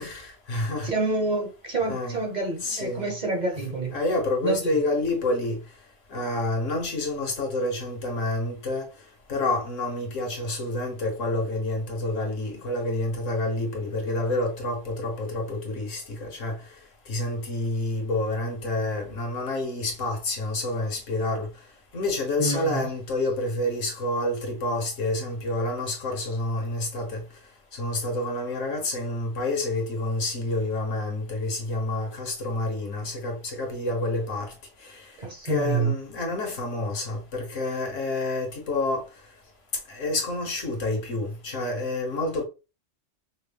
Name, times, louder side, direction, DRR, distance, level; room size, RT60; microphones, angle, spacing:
voice 1, 0.0-0.9 1.8-2.2 2.6-3.1 3.9-5.6 6.1-8.9 9.3-16.6 17.1-21.5 21.9-27.2 27.7-34.5 34.9-35.0 35.5-39.1 39.9-42.4, left 2 dB, 75° left, 1.6 m, -28 dB
voice 2, 0.8-4.0 4.4-4.8 22.4-22.9 35.2-35.9, right 3 dB, 40° right, 1.1 m, -28 dB
5.7 x 2.2 x 3.4 m
omnidirectional pair, 1.3 m